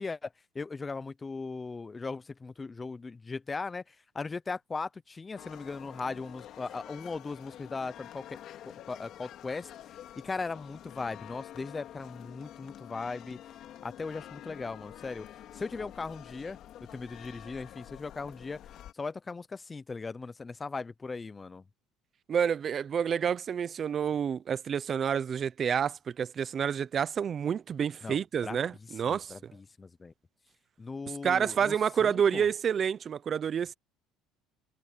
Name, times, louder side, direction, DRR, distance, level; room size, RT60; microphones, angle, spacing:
voice 1, 0.0-8.4 8.7-9.7 10.2-13.4 13.8-15.3 15.5-16.6 16.9-18.6 18.9-21.6 28.0-28.6 29.1-30.1 30.8-31.7 32.0-32.5, left 4 dB, 20° left, 0.6 m, -38 dB
sound 1, 5.4-18.9, left 11 dB, 50° left, 2.6 m, -48 dB
voice 2, 22.3-29.5 31.2-33.7, right 7 dB, 35° right, 0.6 m, -29 dB
cardioid pair, 130°, 0 cm